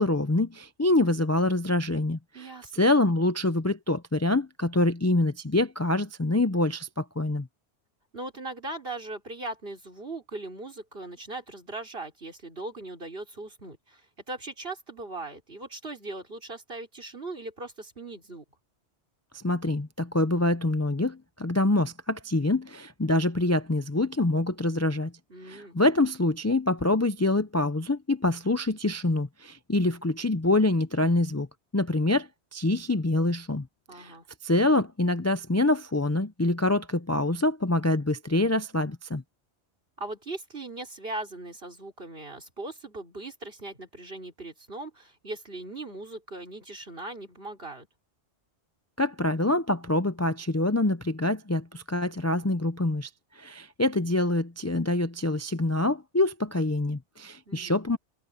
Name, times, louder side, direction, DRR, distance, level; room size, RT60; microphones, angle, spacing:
voice 1, 0.0-2.5 2.7-7.5 19.3-25.1 25.5-31.5 31.7-33.7 33.9-34.1 34.4-39.2 49.0-53.1 53.4-58.0, left 2 dB, 20° left, 0.6 m, -25 dB
voice 2, 2.3-2.9 8.1-18.4 25.3-25.8 33.9-34.3 40.0-47.9 57.5-57.8, right 2 dB, 55° right, 4.7 m, -39 dB
omnidirectional pair, 1.2 m